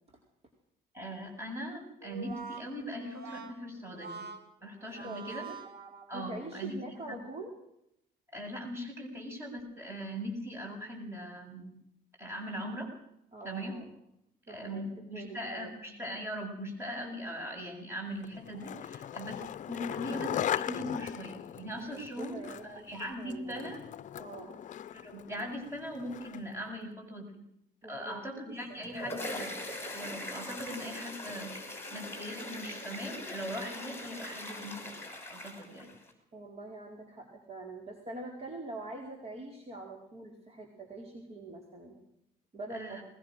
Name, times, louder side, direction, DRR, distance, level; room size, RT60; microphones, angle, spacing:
voice 1, 0.9-4.3 4.6-5.4 6.1-6.7 7.0-7.2 8.3-11.8 12.2-12.9 13.4-13.8 14.5-19.4 19.6-23.8 24.9-27.4 27.8-29.5 29.9-35.0 35.3-35.9 42.7-43.0, equal, 15° right, 1 dB, 7.8 m, -40 dB
Brass instrument, 2.0-6.5, right 6 dB, 65° right, 3.4 m, -45 dB
voice 2, 4.8-5.6 6.1-7.5 13.3-13.9 14.5-15.7 21.9-22.9 23.2-23.7 24.2-24.5 27.8-28.3 28.9-29.2 36.3-42.0 42.5-43.0, right 2 dB, 35° right, 1 dB, 4.6 m, -44 dB
Skateboard, 18.2-26.6, left 10 dB, 45° left, 0.8 m, -39 dB
sound 1, 28.6-36.1, left 1 dB, 15° left, 6.3 m, -41 dB
21.5 x 20.5 x 6.6 m, 0.79 s
cardioid pair, 110°, 17 cm